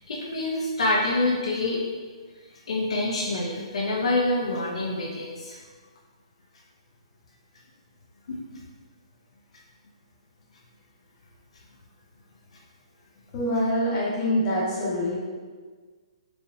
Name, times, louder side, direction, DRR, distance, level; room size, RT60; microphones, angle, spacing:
voice 1, 0.0-1.8 2.7-5.6 8.3-8.6, left 2 dB, 75° left, -3 dB, 0.6 m, -26 dB
voice 2, 13.3-15.2, equal, 25° left, -7 dB, 1.4 m, -25 dB
4.8 x 3.3 x 2.6 m, 1.5 s
hypercardioid pair, 160°, 3 cm